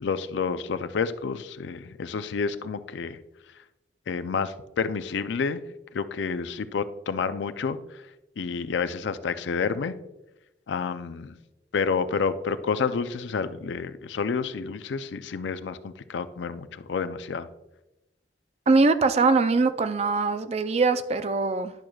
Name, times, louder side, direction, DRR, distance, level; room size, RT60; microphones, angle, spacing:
voice 1, 0.0-3.2 4.1-5.6 5.9-8.0 8.4-9.9 10.7-11.4 11.7-17.5, left 5 dB, 70° left, 13 dB, 0.4 m, -29 dB
voice 2, 18.7-21.7, right 3 dB, 35° right, 11 dB, 0.3 m, -22 dB
10.5 x 6.2 x 2.3 m, 0.96 s
head